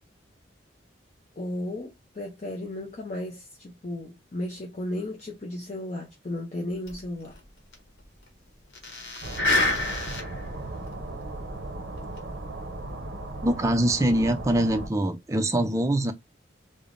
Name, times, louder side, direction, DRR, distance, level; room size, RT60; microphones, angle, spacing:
voice 1, 1.4-7.4, left 1 dB, 35° left, 0.5 m, -34 dB
sound 1, 6.9-7.0 7.2-7.3 7.7-7.8 8.7-10.5 10.9-11.0 12.0-12.2, left 2 dB, 60° left, 0.9 m, -27 dB
sound 2, 9.2-14.9, right 2 dB, 65° right, 0.6 m, -37 dB
voice 2, 13.4-16.1, right 1 dB, 15° right, 0.4 m, -23 dB
3.2 x 2.0 x 2.5 m
head